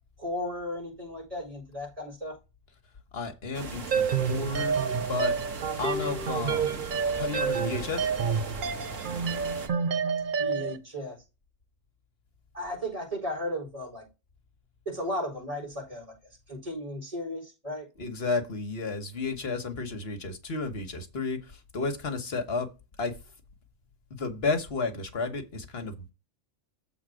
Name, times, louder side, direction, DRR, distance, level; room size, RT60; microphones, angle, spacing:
voice 1, 0.2-2.3 10.4-11.2 12.5-14.1 14.8-16.1 16.5-17.9, left 1 dB, 30° right, 4.5 m, -35 dB
voice 2, 3.1-5.3 5.8-6.8 7.1-8.1 18.0-22.7 23.0-23.1 24.2-26.1, left 4 dB, 55° left, 1.4 m, -32 dB
sound 1, 3.5-9.7, right 4 dB, 85° right, 1.7 m, -39 dB
sound 2, 3.9-10.8, right 6 dB, 50° right, 0.8 m, -29 dB
7.3 x 4.0 x 6.3 m
omnidirectional pair, 1.3 m